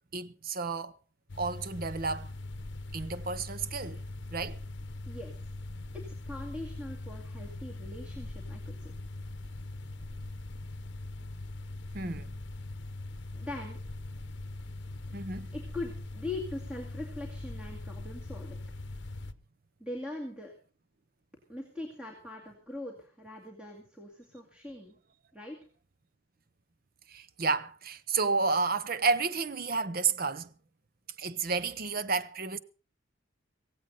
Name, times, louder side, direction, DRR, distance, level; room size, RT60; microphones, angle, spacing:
voice 1, 0.1-0.9 1.4-2.3 2.9-4.0 4.3-4.6 11.9-12.3 15.1-15.5 27.1-30.5 31.2-32.6, right 4 dB, 45° right, 0.8 m, -31 dB
sound 1, 1.3-19.3, left 2 dB, 60° left, 0.9 m, -41 dB
voice 2, 5.1-5.4 5.9-8.9 13.3-13.8 15.5-18.6 19.8-20.5 21.5-25.0 25.3-25.6, left 2 dB, 5° right, 2.3 m, -41 dB
16.5 x 16.5 x 4.0 m
head